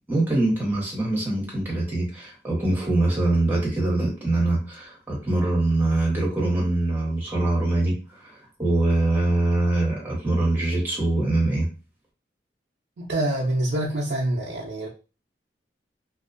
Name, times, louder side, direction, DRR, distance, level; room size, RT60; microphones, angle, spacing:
voice 1, 0.1-7.9 8.2-11.7, right 2 dB, 10° right, 1.0 m, -23 dB
voice 2, 13.0-14.9, right 1 dB, 85° right, 0.5 m, -26 dB
2.5 x 2.2 x 2.5 m
head